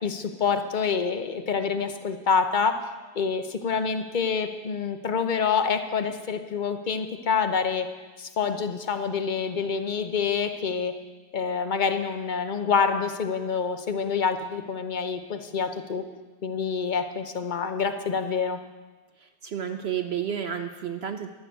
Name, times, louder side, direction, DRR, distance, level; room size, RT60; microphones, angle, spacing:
voice 1, 0.0-2.9 3.1-7.9 8.2-10.9 11.3-16.0 16.4-18.6, left 6 dB, 40° left, 8 dB, 0.7 m, -27 dB
voice 2, 19.2-21.3, right 8 dB, 60° right, 8 dB, 0.7 m, -31 dB
13.5 x 7.1 x 9.0 m, 1.3 s
omnidirectional pair, 1.7 m